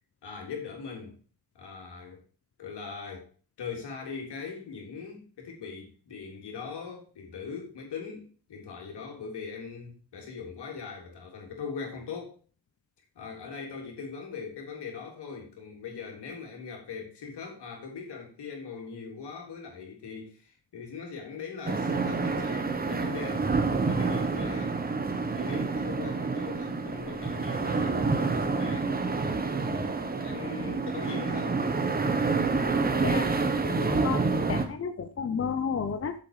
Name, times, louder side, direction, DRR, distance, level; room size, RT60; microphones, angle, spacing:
voice 1, 0.2-1.1 1.5-2.2 2.6-3.3 3.6-12.4 13.1-24.8 25.3-29.0 29.6-31.6, left 5 dB, 80° left, 1 dB, 3.6 m, -40 dB
sound 1, 21.7-34.7, right 4 dB, 20° right, 1.2 m, -28 dB
voice 2, 32.9-33.3 33.6-36.1, left 6 dB, 35° left, 8 dB, 0.8 m, -32 dB
8.3 x 7.6 x 4.9 m, 0.39 s
wide cardioid pair, 145°, 40 cm